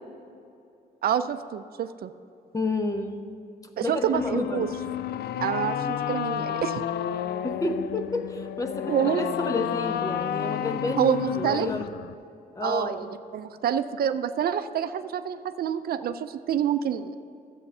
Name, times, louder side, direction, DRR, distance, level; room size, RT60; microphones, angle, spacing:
voice 1, 1.0-2.1 3.8-4.7 5.4-6.8 8.9-9.3 11.0-11.7 12.6-17.2, right 9 dB, 70° right, 11 dB, 0.5 m, -27 dB
voice 2, 2.5-3.2 3.8-4.6 7.4-11.9 12.5-13.1, left 2 dB, 20° left, 6 dB, 0.9 m, -30 dB
sound 1, 4.2-12.1, left 10 dB, 90° left, 0.4 m, -31 dB
12.5 x 7.9 x 5.5 m, 2.7 s
cardioid pair, 120°, 16 cm